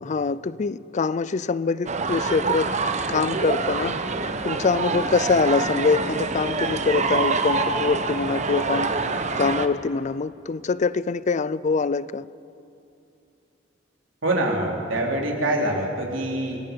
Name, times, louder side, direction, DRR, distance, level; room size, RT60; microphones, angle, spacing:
voice 1, 0.0-2.7 3.1-4.0 4.4-8.9 9.4-12.2 15.4-15.7, left 4 dB, 40° left, 18 dB, 0.4 m, -24 dB
sound 1, 1.9-9.7, right 3 dB, 35° right, 1.0 m, -26 dB
voice 2, 14.2-16.6, right 1 dB, 90° right, 0 dB, 3.4 m, -25 dB
25.0 x 21.0 x 5.3 m, 2.7 s
head